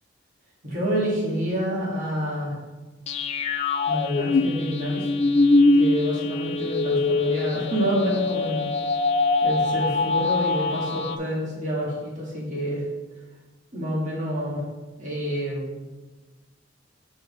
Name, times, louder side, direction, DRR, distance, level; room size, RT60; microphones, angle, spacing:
voice 1, 0.6-2.6 3.8-5.1 5.7-8.7 9.4-12.8 13.7-14.6 15.0-15.6, equal, 40° right, -5 dB, 1.8 m, -28 dB
sound 1, 3.1-11.2, left 3 dB, 35° left, 0.3 m, -23 dB
5.9 x 4.4 x 4.1 m, 1.2 s
head